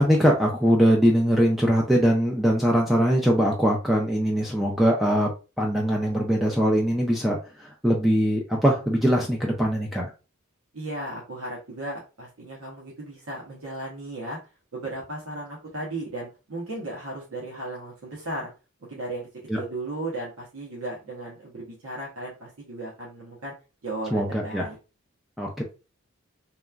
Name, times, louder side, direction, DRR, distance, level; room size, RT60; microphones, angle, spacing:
voice 1, 0.0-5.3 5.6-10.1 19.5-19.6 24.1-24.7 25.4-25.6, equal, ahead, -1 dB, 0.3 m, -22 dB
voice 2, 10.7-14.4 14.7-18.5 18.8-19.3 19.6-23.5 23.8-24.8, right 1 dB, 90° right, -4 dB, 0.9 m, -35 dB
2.9 x 2.3 x 2.2 m, 0.31 s
head